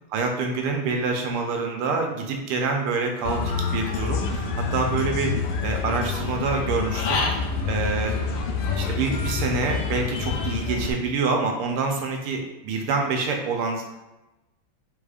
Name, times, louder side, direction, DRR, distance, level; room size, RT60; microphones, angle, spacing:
voice 1, 0.1-5.3 5.6-8.2 8.7-13.8, right 4 dB, 90° right, 3 dB, 1.6 m, -26 dB
Human voice / Bird, 3.3-10.9, left 5 dB, 90° left, 1.5 m, -27 dB
4.8 x 4.2 x 2.4 m, 1.0 s
omnidirectional pair, 2.4 m